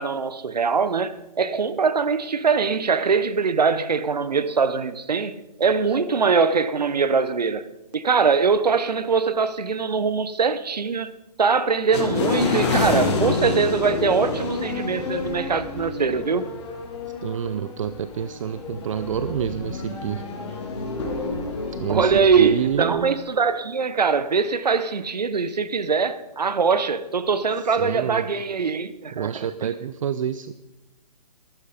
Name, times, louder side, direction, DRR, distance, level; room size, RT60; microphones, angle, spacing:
voice 1, 0.0-5.3 5.6-7.6 7.9-11.1 11.4-16.4 21.9-29.3 29.6-29.7, right 5 dB, 90° right, 1.0 m, -22 dB
sound 1, 11.9-22.9, left 3 dB, 45° left, 3.4 m, -28 dB
voice 2, 17.1-20.3 21.8-23.2 27.6-28.3 29.1-30.5, right 8 dB, 55° right, 0.6 m, -28 dB
14.0 x 12.0 x 5.2 m
hypercardioid pair, 150°, 20 cm